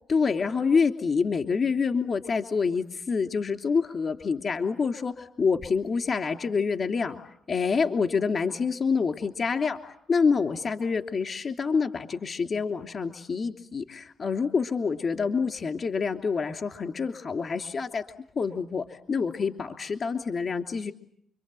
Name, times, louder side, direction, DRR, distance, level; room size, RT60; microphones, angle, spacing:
voice 1, 0.1-7.2 7.5-18.0 18.3-20.9, left 5 dB, 45° left, 6 dB, 2.9 m, -27 dB
30.0 x 24.0 x 7.7 m, 0.70 s
cardioid pair, 100°, 0 cm